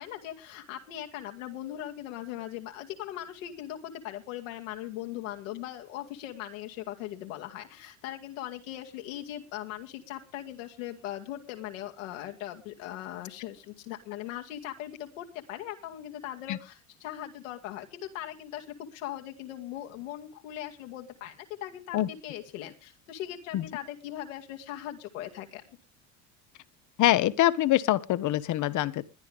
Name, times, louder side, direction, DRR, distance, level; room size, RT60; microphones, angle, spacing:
voice 1, 0.0-25.6, left 12 dB, 80° left, 3 dB, 2.4 m, -39 dB
voice 2, 27.0-29.1, left 14 dB, 50° left, 15 dB, 1.0 m, -24 dB
21.5 x 10.5 x 3.6 m, 0.30 s
hypercardioid pair, 90°, 39 cm